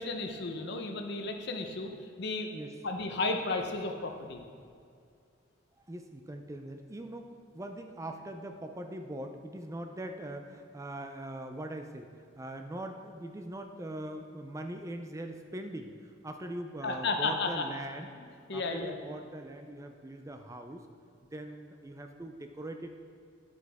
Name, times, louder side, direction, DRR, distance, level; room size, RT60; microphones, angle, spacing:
voice 1, 0.0-1.9 2.2-2.5 2.8-4.4 16.8-17.6 18.2-18.3 18.5-18.9, left 3 dB, 60° left, 4 dB, 0.8 m, -33 dB
voice 2, 5.9-18.1 18.5-20.9 21.3-22.9, right 1 dB, 15° right, 5 dB, 0.4 m, -41 dB
9.9 x 8.1 x 3.5 m, 2.3 s
head